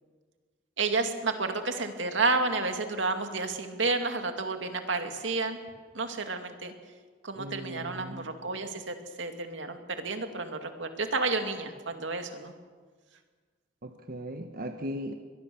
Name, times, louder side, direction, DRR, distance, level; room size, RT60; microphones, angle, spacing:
voice 1, 0.8-5.6 5.9-6.7 7.2-12.5, right 3 dB, 80° right, 5 dB, 2.4 m, -31 dB
voice 2, 7.4-8.2 13.8-15.1, equal, 50° right, 5 dB, 1.2 m, -38 dB
23.5 x 21.5 x 7.1 m, 1.5 s
head